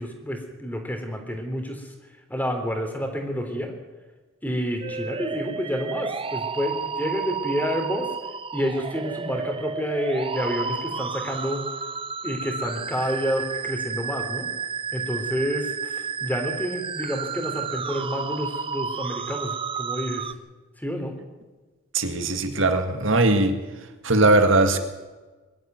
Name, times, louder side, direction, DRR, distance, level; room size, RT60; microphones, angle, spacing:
voice 1, 0.0-1.9 2.3-3.7 4.4-8.1 8.5-11.7 12.2-14.5 14.9-20.3 20.8-21.1, equal, 10° left, 4 dB, 3.4 m, -29 dB
sound 1, 4.8-20.3, right 5 dB, 25° right, 0.6 m, -32 dB
voice 2, 21.9-23.6 24.0-24.8, right 2 dB, 70° right, 6 dB, 1.9 m, -19 dB
22.5 x 12.5 x 9.5 m, 1.2 s
head